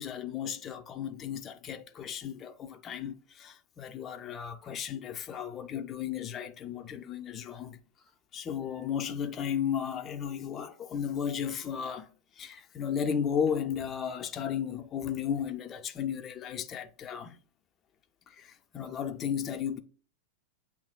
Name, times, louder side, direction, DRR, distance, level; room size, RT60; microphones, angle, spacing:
voice 1, 0.0-7.8 8.3-12.1 12.4-17.4 18.3-19.8, left 8 dB, 25° left, 0.5 m, -34 dB
7.8 x 2.9 x 2.2 m
figure-of-eight pair, 90°, 0 cm